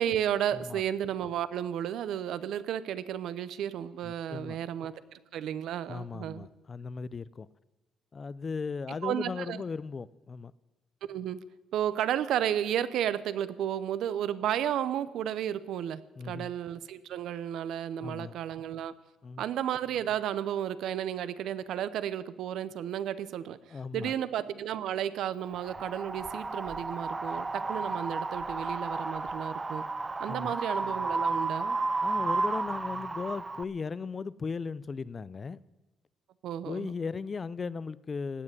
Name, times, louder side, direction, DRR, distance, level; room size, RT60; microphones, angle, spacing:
voice 1, 0.0-6.5 9.0-9.6 11.1-11.4 11.7-18.9 19.4-29.8 30.2-31.8 36.4-36.9, right 10 dB, 75° right, 0.7 m, -33 dB
voice 2, 4.0-4.6 5.9-7.5 8.1-10.5 16.2-16.5 18.0-18.3 19.2-19.4 23.7-24.1 30.3-30.6 32.0-35.6 36.6-38.4, left 5 dB, 30° left, 0.4 m, -37 dB
Wind, 25.5-33.6, right 3 dB, 20° right, 0.6 m, -32 dB
17.0 x 7.5 x 9.7 m
cardioid pair, 125°, 0 cm